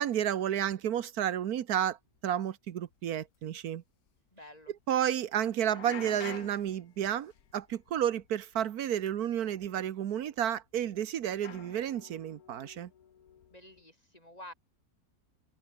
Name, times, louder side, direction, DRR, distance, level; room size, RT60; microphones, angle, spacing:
voice 1, 0.0-2.0 2.2-3.8 4.9-12.9, right 10 dB, 80° right, 1.4 m, -31 dB
sound 1, 2.2-2.3 2.8-2.9 3.2-3.3 3.7-3.8 5.6-8.6 8.9-9.2 10.1-10.2 11.4-13.8, left 8 dB, 75° left, 1.7 m, -49 dB
voice 2, 4.3-4.7 13.5-14.5, left 1 dB, 25° left, 6.4 m, -50 dB
omnidirectional pair, 1.6 m